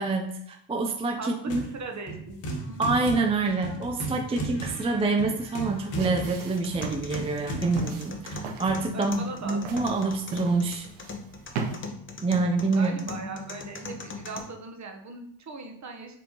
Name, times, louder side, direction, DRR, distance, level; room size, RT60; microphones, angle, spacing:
voice 1, 0.0-1.6 2.8-10.9 12.2-13.1, right 3 dB, 15° right, 3 dB, 0.3 m, -27 dB
voice 2, 1.2-2.4 2.7-2.9 7.5-7.7 8.9-9.6 9.9-10.2 12.7-16.2, right 3 dB, 35° right, 3 dB, 1.0 m, -39 dB
sound 1, 1.5-1.8 2.1-8.8, right 2 dB, 60° left, 1.5 m, -35 dB
sound 2, 5.6-11.8, right 5 dB, 90° right, 0.9 m, -38 dB
sound 3, 6.4-14.4, left 4 dB, 25° left, 0.7 m, -41 dB
5.2 x 3.5 x 2.9 m, 0.74 s
cardioid pair, 80°, 49 cm